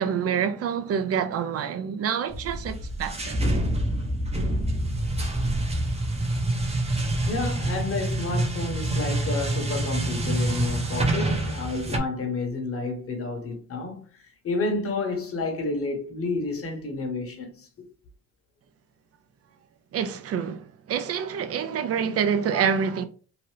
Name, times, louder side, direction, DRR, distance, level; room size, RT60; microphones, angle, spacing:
voice 1, 0.0-3.4 19.9-23.0, right 7 dB, 50° right, 0.5 m, -27 dB
sound 1, 2.3-12.0, right 1 dB, 20° right, 0.7 m, -26 dB
voice 2, 7.3-17.7, left 3 dB, 50° left, 1.1 m, -30 dB
2.9 x 2.5 x 3.2 m
cardioid pair, 90°, 30 cm